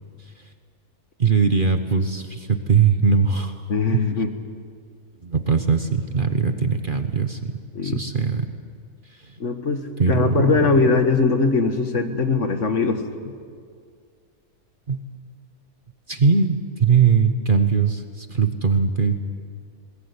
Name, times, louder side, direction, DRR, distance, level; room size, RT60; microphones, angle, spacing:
voice 1, 1.2-4.1 5.2-8.5 9.2-9.3 10.0-10.6 14.9-15.0 16.1-19.2, right 5 dB, 35° right, 7 dB, 1.2 m, -21 dB
voice 2, 3.7-4.3 7.8-8.0 9.4-13.3, left 4 dB, 55° left, 7 dB, 1.7 m, -21 dB
21.5 x 20.0 x 9.7 m, 2.1 s
omnidirectional pair, 1.6 m